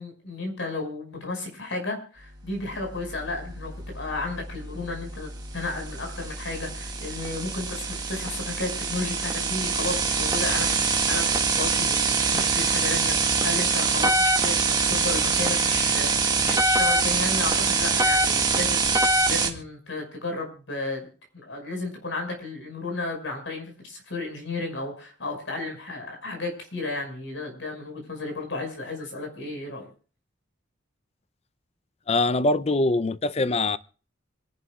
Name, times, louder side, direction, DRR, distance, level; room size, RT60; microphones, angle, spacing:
voice 1, 0.0-21.1 21.3-29.9, left 2 dB, 75° left, 5.6 m, -33 dB
sound 1, 2.6-19.5, right 4 dB, 20° right, 1.8 m, -25 dB
sound 2, 9.7-19.6, equal, 5° left, 2.9 m, -42 dB
voice 2, 32.1-33.8, left 2 dB, 35° left, 0.5 m, -23 dB
26.5 x 11.0 x 2.4 m
head